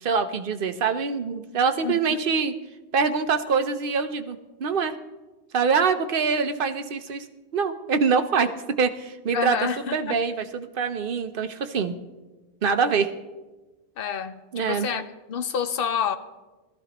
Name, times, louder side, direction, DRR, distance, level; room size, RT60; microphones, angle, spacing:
voice 1, 0.0-2.5 2.9-4.9 5.5-7.2 7.5-8.5 8.8-11.9 12.6-13.1 14.5-14.9, right 5 dB, 60° right, 8 dB, 0.9 m, -24 dB
voice 2, 1.8-2.2 9.3-10.2 14.0-15.0 15.3-16.2, left 7 dB, 60° left, 10 dB, 0.9 m, -28 dB
17.5 x 13.5 x 3.0 m, 1.2 s
omnidirectional pair, 1.1 m